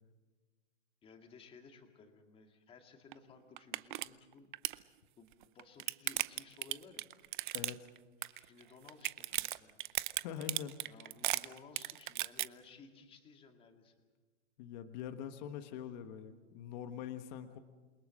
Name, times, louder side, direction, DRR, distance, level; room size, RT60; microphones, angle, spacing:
voice 1, 1.0-5.3 5.5-7.1 8.2-9.8 10.8-14.0, left 4 dB, 15° left, 4 dB, 2.2 m, -58 dB
sound 1, 3.1-3.2 3.6-4.1 4.3-4.8 5.4-8.6 8.9-12.5, right 15 dB, 40° right, 0.7 m, -36 dB
voice 2, 7.5-7.9 10.2-11.0 14.6-17.6, left 9 dB, 35° left, 8 dB, 1.4 m, -44 dB
28.5 x 22.5 x 6.5 m, 1.3 s
hypercardioid pair, 160°, 38 cm